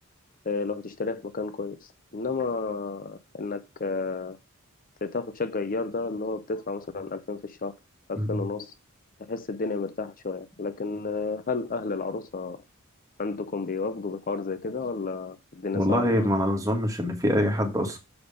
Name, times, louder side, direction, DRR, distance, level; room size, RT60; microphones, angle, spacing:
voice 1, 0.4-4.4 5.0-7.7 8.1-8.7 9.3-12.6 13.2-16.3, left 4 dB, 40° left, 0.6 m, -31 dB
voice 2, 15.7-18.0, equal, 15° right, 2.1 m, -24 dB
7.1 x 5.1 x 5.1 m
head